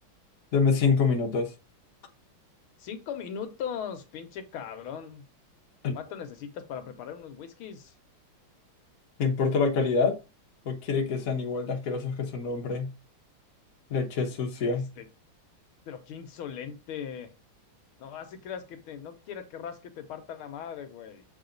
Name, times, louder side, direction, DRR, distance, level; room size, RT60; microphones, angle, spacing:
voice 1, 0.5-1.5 5.8-6.0 9.2-10.2 10.6-12.9 13.9-14.9, left 5 dB, 50° left, 1.3 m, -26 dB
voice 2, 2.8-5.3 5.9-7.9 14.6-15.1 15.9-17.3 18.0-21.2, left 8 dB, 80° left, 1.7 m, -39 dB
7.2 x 3.6 x 3.8 m
omnidirectional pair, 2.3 m